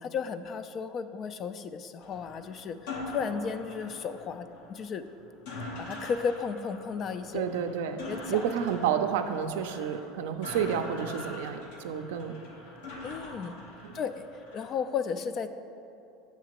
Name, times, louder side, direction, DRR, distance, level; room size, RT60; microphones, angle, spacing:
voice 1, 0.0-5.0 5.8-7.4 8.1-8.5 13.0-13.5 13.9-15.5, left 6 dB, 45° left, 11 dB, 0.3 m, -34 dB
sound 1, 2.0-14.7, left 2 dB, 80° left, 0.9 m, -43 dB
voice 2, 7.3-8.0 8.3-12.3 13.8-13.9, right 8 dB, 80° right, 7 dB, 0.4 m, -30 dB
7.2 x 5.8 x 2.9 m, 2.8 s
supercardioid pair, 100°, 0 cm